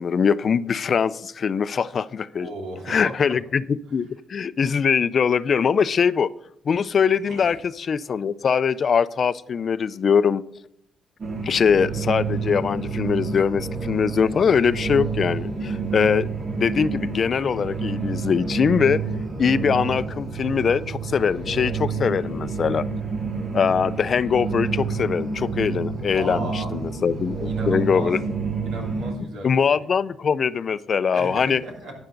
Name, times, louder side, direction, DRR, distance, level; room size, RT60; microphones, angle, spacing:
voice 1, 0.0-2.5 2.9-6.3 6.7-10.4 11.4-16.3 16.6-19.0 19.4-22.9 23.5-28.2 29.4-31.6, left 6 dB, 50° left, 17 dB, 0.4 m, -22 dB
voice 2, 2.4-3.1 7.2-7.5 26.1-26.7 27.4-28.2 28.6-29.9 31.1-31.9, right 2 dB, 80° right, 0 dB, 3.1 m, -35 dB
sound 1, 11.2-29.1, right 4 dB, 45° right, 2.1 m, -29 dB
12.5 x 9.1 x 3.9 m, 0.75 s
cardioid pair, 90°, 0 cm